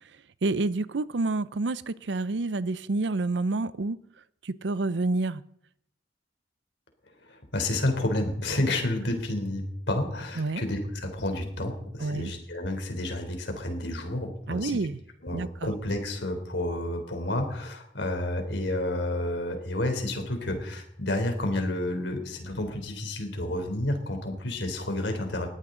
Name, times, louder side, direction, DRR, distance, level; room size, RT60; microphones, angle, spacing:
voice 1, 0.4-4.0 4.4-5.4 10.4-10.6 12.0-12.3 14.5-15.0 15.3-15.7, right 3 dB, 85° right, 17 dB, 0.6 m, -28 dB
voice 2, 7.3-14.8 15.2-25.5, left 1 dB, 85° left, 5 dB, 3.5 m, -30 dB
20.5 x 14.5 x 3.9 m, 0.73 s
head